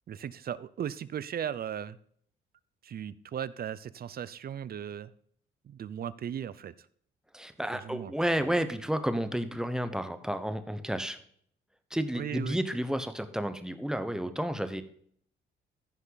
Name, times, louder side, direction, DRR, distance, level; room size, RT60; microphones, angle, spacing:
voice 1, 0.1-2.0 2.8-5.1 5.6-6.7 7.8-8.1 12.2-12.6, right 9 dB, 50° right, 18 dB, 0.6 m, -37 dB
voice 2, 7.3-11.2 11.9-14.8, equal, 5° right, 10 dB, 1.1 m, -31 dB
15.0 x 5.5 x 4.1 m, 0.62 s
cardioid pair, 90°, 20 cm